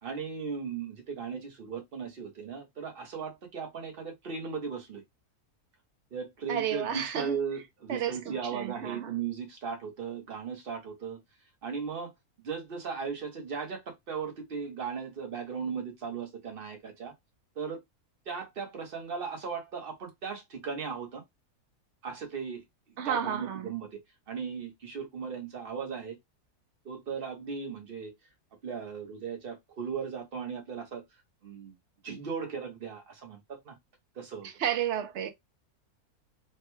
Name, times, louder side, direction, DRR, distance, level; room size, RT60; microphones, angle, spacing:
voice 1, 0.0-5.0 6.1-11.2 11.6-12.1 12.4-17.1 17.6-17.8 18.3-21.2 22.0-22.6 23.0-24.0 24.3-26.2 26.8-28.1 28.6-31.0 31.4-31.7 32.0-33.7 34.1-34.5, right 6 dB, 45° right, 1.0 m, -37 dB
voice 2, 6.5-7.4 7.9-9.1 23.0-23.7 34.6-35.3, right 9 dB, 65° right, 0.7 m, -32 dB
3.3 x 2.2 x 3.0 m
omnidirectional pair, 1.6 m